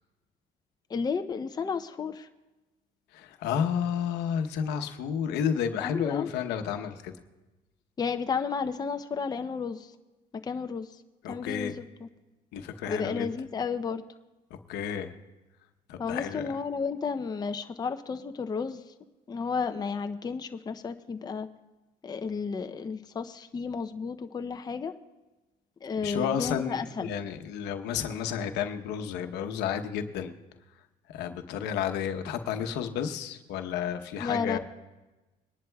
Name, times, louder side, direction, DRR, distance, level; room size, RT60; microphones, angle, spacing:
voice 1, 0.9-2.3 5.8-6.3 8.0-9.9 10.3-11.0 11.3-12.1 12.9-14.0 16.0-18.8 19.3-21.5 22.0-24.9 25.8-27.1 34.2-34.6, left 5 dB, 25° left, 7 dB, 0.6 m, -32 dB
voice 2, 3.1-7.1 11.2-11.7 12.5-13.3 14.7-15.1 15.9-16.5 26.0-30.3 31.1-34.6, left 8 dB, 85° left, 7 dB, 0.9 m, -31 dB
22.5 x 11.0 x 2.3 m, 1.1 s
cardioid pair, 110°, 17 cm